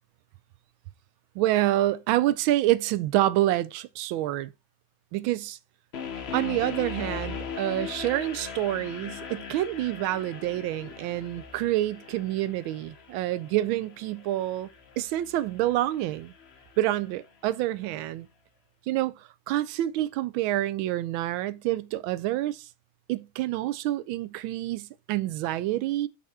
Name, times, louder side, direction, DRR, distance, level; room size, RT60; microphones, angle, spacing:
voice 1, 1.3-4.5 5.1-5.6 6.3-14.7 15.0-16.3 16.8-18.3 18.9-22.7 23.1-26.1, right 14 dB, 75° right, 1.3 m, -27 dB
sound 1, 5.9-17.0, left 6 dB, 55° left, 0.7 m, -40 dB
5.8 x 4.2 x 4.8 m
omnidirectional pair, 2.3 m